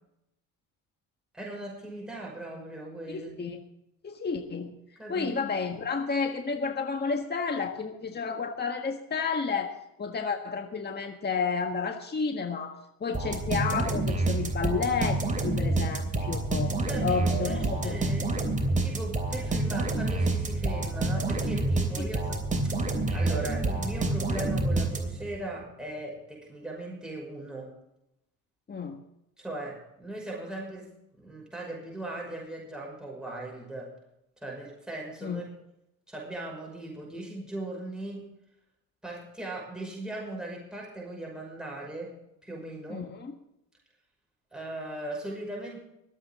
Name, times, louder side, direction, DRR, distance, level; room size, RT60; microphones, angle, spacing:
voice 1, 1.3-3.6 5.0-5.3 16.9-18.3 18.8-27.7 29.4-30.9 31.1-33.9 34.4-35.5 36.1-38.3 39.0-42.1 42.4-43.1 44.5-45.8, right 1 dB, ahead, -3 dB, 5.9 m, -39 dB
voice 2, 3.1-3.6 4.0-4.8 5.1-16.8 17.0-18.0 22.0-22.1 28.7-29.0 35.2-35.4 42.9-43.3, left 5 dB, 30° left, 5 dB, 1.6 m, -31 dB
sound 1, 13.1-25.4, right 2 dB, 20° right, 3.2 m, -28 dB
24.5 x 8.6 x 3.7 m, 0.83 s
supercardioid pair, 90°, 35 cm